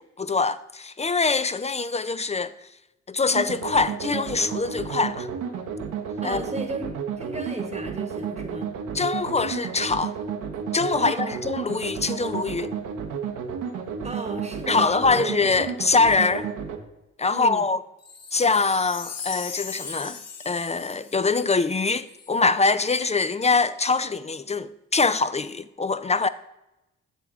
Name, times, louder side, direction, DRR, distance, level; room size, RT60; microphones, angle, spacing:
voice 1, 0.2-2.5 3.1-5.3 6.2-6.4 8.9-10.2 10.7-12.7 14.7-16.5 17.2-17.8 18.3-20.2 20.5-26.3, left 4 dB, 20° left, 0.5 m, -23 dB
sound 1, 3.3-16.8, right 6 dB, 75° right, 1.1 m, -32 dB
voice 2, 6.2-6.9 7.2-8.7 11.0-11.4 14.0-15.3 17.3-17.7, right 2 dB, 20° right, 1.3 m, -34 dB
Wind chime, 18.0-22.4 22.9-23.0, left 5 dB, 50° left, 1.9 m, -38 dB
7.8 x 7.1 x 3.6 m
hypercardioid pair, 50°, 32 cm